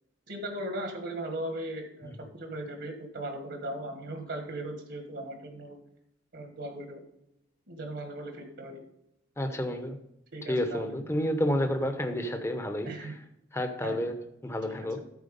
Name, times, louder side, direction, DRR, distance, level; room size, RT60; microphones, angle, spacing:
voice 1, 0.3-5.8 6.3-7.0 7.7-8.8 10.3-11.0 12.8-13.1 13.8-14.1 14.7-14.9, right 1 dB, 65° right, 1.5 m, -38 dB
voice 2, 9.4-10.0 10.5-13.1 13.5-15.0, equal, 15° left, 0.8 m, -30 dB
13.5 x 4.6 x 5.2 m
head